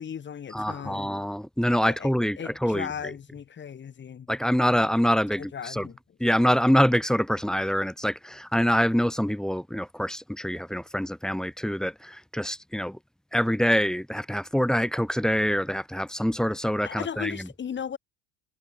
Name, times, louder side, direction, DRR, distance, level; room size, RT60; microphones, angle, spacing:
voice 1, 0.0-1.1 1.8-2.1 2.4-4.3 5.4-6.0 16.8-18.0, left 8 dB, 30° left, 1.7 m, -36 dB
voice 2, 0.5-2.9 4.3-5.9 6.2-13.0 13.3-17.5, equal, ahead, 1.1 m, -25 dB
supercardioid pair, 105°, 35 cm